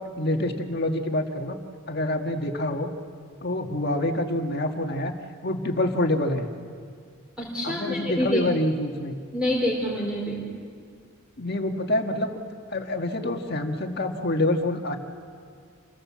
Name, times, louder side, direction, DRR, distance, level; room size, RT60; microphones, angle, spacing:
voice 1, 0.2-1.6 1.9-2.9 3.4-5.1 5.4-6.5 7.6-9.1 11.4-12.4 12.7-15.0, left 1 dB, 45° left, 4 dB, 1.9 m, -26 dB
voice 2, 7.4-8.4 9.3-10.4, left 1 dB, 5° right, -4 dB, 3.7 m, -26 dB
28.0 x 22.0 x 7.5 m, 2.1 s
head